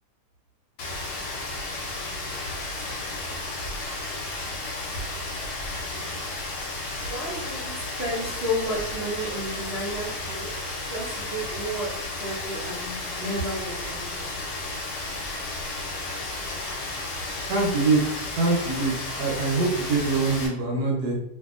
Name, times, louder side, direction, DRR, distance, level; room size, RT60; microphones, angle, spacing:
Rain, 0.8-20.5, left 2 dB, 85° left, 1.2 m, -33 dB
voice 1, 3.0-3.7 5.2-6.1 7.0-10.5 10.9-11.9 12.2-14.3, equal, 55° right, -7 dB, 0.7 m, -33 dB
voice 2, 17.5-18.0 18.3-21.1, right 3 dB, 75° right, -2 dB, 1.2 m, -24 dB
2.7 x 2.6 x 2.4 m, 0.80 s
omnidirectional pair, 1.8 m